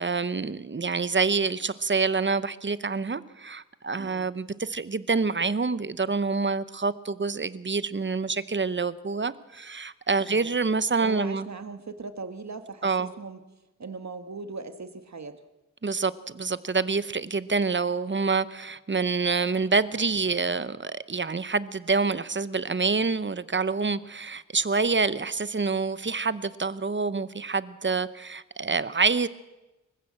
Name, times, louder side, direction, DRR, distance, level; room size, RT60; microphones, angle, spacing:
voice 1, 0.0-11.5 12.8-13.1 15.8-29.3, right 4 dB, 40° right, 15 dB, 0.8 m, -27 dB
voice 2, 10.2-10.5 11.0-13.4 13.8-15.4, right 4 dB, 60° right, 9 dB, 1.5 m, -39 dB
24.5 x 15.0 x 7.5 m, 1.1 s
wide cardioid pair, 90°, 31 cm